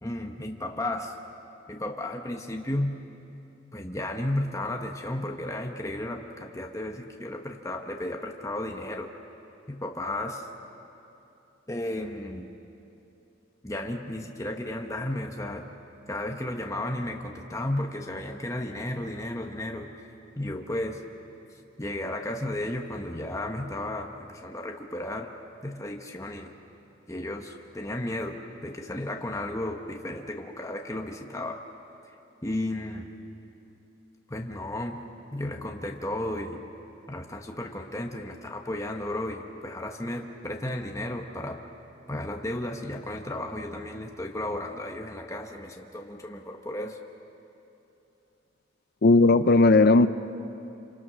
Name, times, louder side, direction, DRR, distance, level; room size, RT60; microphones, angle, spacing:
voice 1, 0.0-1.1 1.7-2.9 3.7-9.1 9.7-10.5 11.7-12.5 13.6-15.7 16.1-19.9 20.4-21.0 21.8-25.3 25.6-26.5 27.1-31.6 32.4-33.1 34.3-35.0 35.3-36.6 37.1-41.6 42.1-47.0, left 1 dB, 15° left, 2 dB, 1.3 m, -33 dB
voice 2, 49.0-50.1, left 2 dB, 55° left, 12 dB, 0.6 m, -17 dB
27.5 x 27.0 x 6.3 m, 2.8 s
head